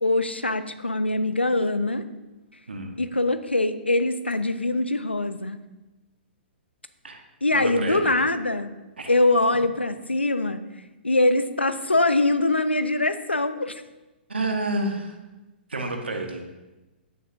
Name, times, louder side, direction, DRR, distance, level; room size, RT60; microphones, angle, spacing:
voice 1, 0.0-2.1 3.0-5.6 7.4-8.7 9.1-10.6 11.0-13.8, left 2 dB, 90° left, 11 dB, 0.6 m, -23 dB
voice 2, 7.5-8.1 9.0-9.1 14.3-15.2 15.7-16.4, right 2 dB, 75° right, 3 dB, 1.3 m, -29 dB
15.0 x 6.7 x 2.6 m, 1.1 s
figure-of-eight pair, 115°, 6 cm